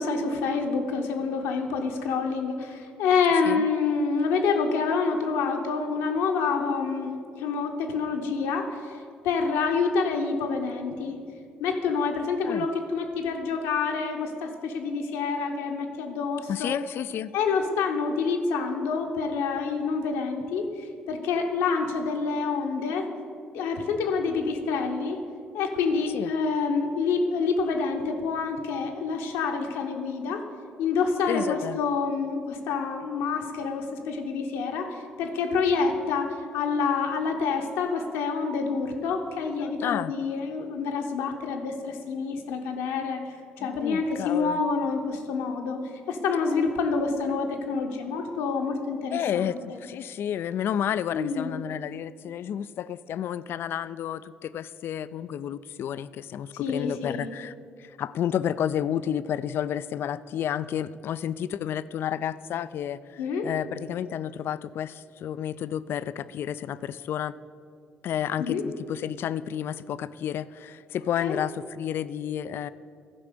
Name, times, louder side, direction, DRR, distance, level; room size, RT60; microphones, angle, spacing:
voice 1, 0.0-9.0 9.2-11.2 11.6-16.8 17.3-20.7 21.1-23.1 23.5-25.2 25.5-30.4 30.8-43.2 43.6-45.8 46.1-49.8 51.1-51.6 56.5-57.3 63.2-63.5 68.4-68.6 71.2-71.4, left 5 dB, 80° left, 3 dB, 1.0 m, -27 dB
voice 2, 16.5-17.3 26.1-26.3 31.3-31.8 39.6-40.1 43.6-44.6 49.1-57.5 57.8-67.4 68.0-72.7, left 10 dB, 65° left, 16 dB, 0.3 m, -31 dB
12.5 x 4.9 x 6.7 m, 2.3 s
hypercardioid pair, 50°, 4 cm